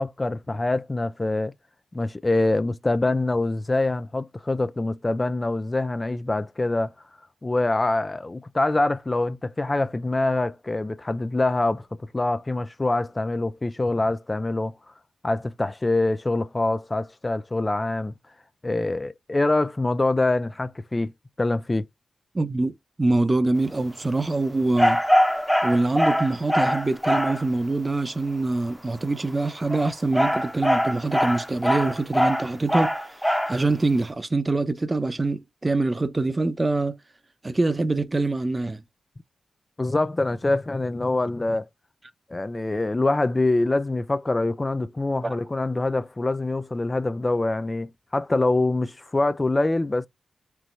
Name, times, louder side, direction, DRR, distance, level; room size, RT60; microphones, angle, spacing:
voice 1, 0.0-1.5 1.9-6.9 7.4-11.9 12.1-14.7 15.2-18.1 18.6-21.1 21.4-21.9 39.8-41.7 42.3-50.1, left 2 dB, 30° left, 0.4 m, -24 dB
voice 2, 22.3-25.0 25.6-32.9 33.5-37.0 37.4-38.8 45.2-45.4, right 2 dB, 35° right, 0.8 m, -24 dB
sound 1, 24.8-27.4 29.5-33.6, equal, 5° left, 0.9 m, -22 dB
4.6 x 3.1 x 2.6 m
supercardioid pair, 40°, 0 cm